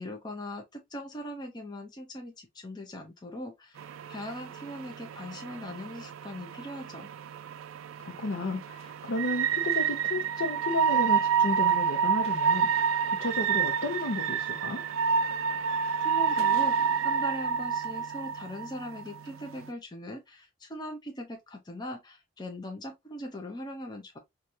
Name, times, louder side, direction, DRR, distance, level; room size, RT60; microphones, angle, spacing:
voice 1, 0.0-7.1 16.0-24.2, left 1 dB, 20° left, 0.6 m, -40 dB
sound 1, 3.8-19.7, right 7 dB, 90° right, 0.3 m, -29 dB
voice 2, 8.0-14.8, left 2 dB, 90° left, 0.6 m, -33 dB
4.5 x 2.3 x 2.6 m
head